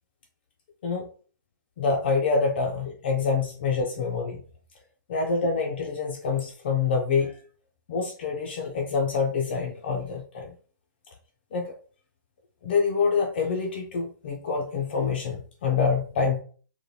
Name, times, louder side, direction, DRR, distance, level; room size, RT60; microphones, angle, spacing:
voice 1, 1.8-4.4 5.1-7.4 7.9-10.5 11.5-11.7 12.6-16.4, left 5 dB, 30° left, 1 dB, 0.3 m, -26 dB
3.1 x 2.2 x 2.6 m, 0.42 s
hypercardioid pair, 165°, 11 cm